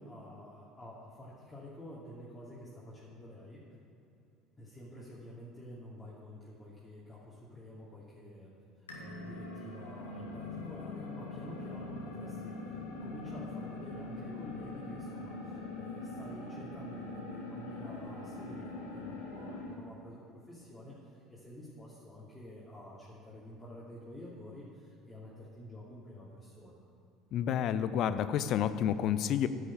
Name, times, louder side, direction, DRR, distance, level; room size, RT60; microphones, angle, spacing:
voice 1, 0.0-3.6 4.6-8.5 9.0-20.2 20.5-26.8, left 1 dB, 20° left, -8 dB, 2.7 m, -49 dB
sound 1, 8.9-19.8, left 2 dB, 90° left, 1.7 m, -42 dB
voice 2, 27.3-29.5, left 9 dB, 55° left, 12 dB, 0.5 m, -30 dB
9.9 x 6.5 x 8.8 m, 2.8 s
hypercardioid pair, 65°, 0 cm